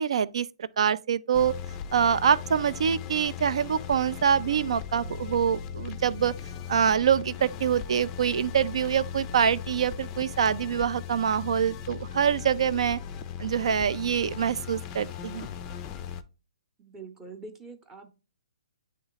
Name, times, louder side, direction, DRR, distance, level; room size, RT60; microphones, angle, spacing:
voice 1, 0.0-1.5 1.9-6.3 6.7-13.0 13.4-15.5, right 8 dB, 60° right, 0.4 m, -25 dB
sound 1, 1.3-16.2, left 8 dB, 20° left, 0.4 m, -38 dB
voice 2, 16.8-18.1, right 3 dB, 10° right, 0.8 m, -44 dB
9.1 x 3.2 x 3.9 m
hypercardioid pair, 150°, 3 cm